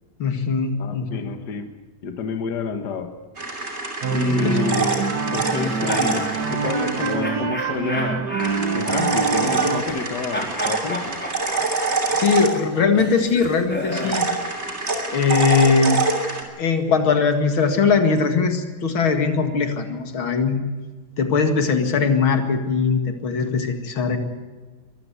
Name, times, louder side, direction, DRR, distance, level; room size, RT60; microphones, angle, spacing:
voice 1, 0.2-1.3 4.3-4.6 12.1-14.3 15.1-16.0 16.6-20.6 21.2-24.2, left 5 dB, 85° left, 6 dB, 2.8 m, -20 dB
voice 2, 0.8-1.7 2.0-3.1 4.1-5.1 5.3-8.3 8.7-11.2, left 5 dB, 60° left, 7 dB, 1.9 m, -28 dB
sound 1, 3.4-7.1 8.4-13.0 13.9-16.4, right 3 dB, 35° right, 3.3 m, -25 dB
sound 2, 4.0-9.8, right 5 dB, 60° right, 1.8 m, -25 dB
sound 3, 5.4-6.3 7.2-10.0 10.3-14.2, equal, 5° left, 4.3 m, -32 dB
22.5 x 14.5 x 8.1 m, 1.4 s
omnidirectional pair, 2.2 m